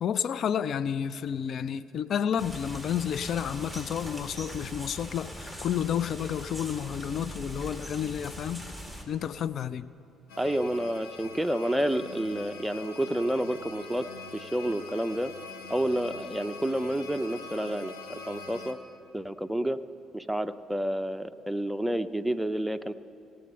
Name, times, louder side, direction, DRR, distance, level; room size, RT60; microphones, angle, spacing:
voice 1, 0.0-8.7 9.1-9.9, left 8 dB, 55° left, 15 dB, 0.3 m, -30 dB
sound 1, 2.4-9.0, equal, 15° left, 2.2 m, -41 dB
sound 2, 10.3-18.7, left 4 dB, 75° left, 1.0 m, -44 dB
voice 2, 10.4-14.1 14.3-15.3 15.7-18.8 19.1-19.8 20.1-22.9, right 1 dB, 5° right, 9 dB, 0.6 m, -29 dB
17.5 x 7.7 x 5.6 m, 2.7 s
hypercardioid pair, 50°, 0 cm